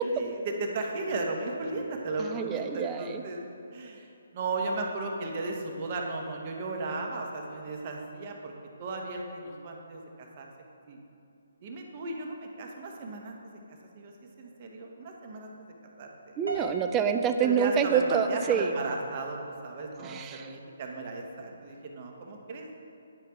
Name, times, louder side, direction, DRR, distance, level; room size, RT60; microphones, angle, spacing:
voice 1, 0.1-3.4 3.7-8.5 8.8-10.5 10.9-11.0 11.6-13.4 13.7-16.3 17.4-22.7, right 3 dB, 40° right, 1 dB, 1.0 m, -36 dB
voice 2, 2.2-3.2 16.4-18.7 20.0-20.5, right 7 dB, 20° right, 7 dB, 0.4 m, -27 dB
Piano, 16.5-18.7, right 3 dB, 85° right, 1.3 m, -40 dB
9.0 x 5.1 x 4.4 m, 2.6 s
hypercardioid pair, 150°, 0 cm